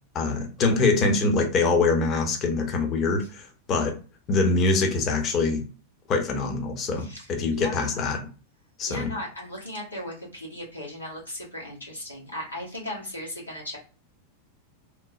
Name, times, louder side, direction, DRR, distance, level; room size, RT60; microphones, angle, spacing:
voice 1, 0.1-4.0 4.3-5.6 6.1-8.2 8.8-9.1, left 3 dB, 30° left, 3 dB, 0.7 m, -24 dB
voice 2, 7.0-8.0 8.9-13.8, left 1 dB, 85° left, -4 dB, 1.2 m, -37 dB
3.0 x 2.0 x 2.4 m, 0.35 s
figure-of-eight pair, 90°, 0 cm